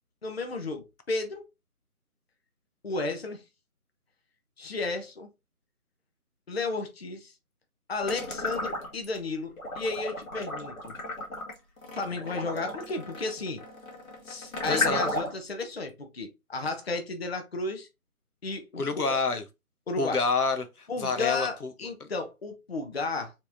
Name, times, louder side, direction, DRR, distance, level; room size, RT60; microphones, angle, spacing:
voice 1, 0.2-1.5 2.8-3.4 4.6-5.3 6.5-7.3 7.9-11.0 11.9-13.6 14.3-17.9 18.4-19.0 19.9-20.2 20.9-23.3, left 3 dB, 45° left, 0.7 m, -33 dB
sound 1, 8.0-9.2 9.6-15.5, left 2 dB, 65° left, 2.1 m, -33 dB
voice 2, 14.7-15.0 18.8-19.4 20.0-21.7, left 4 dB, 85° left, 1.1 m, -28 dB
5.4 x 3.6 x 2.6 m
figure-of-eight pair, 165°, 44 cm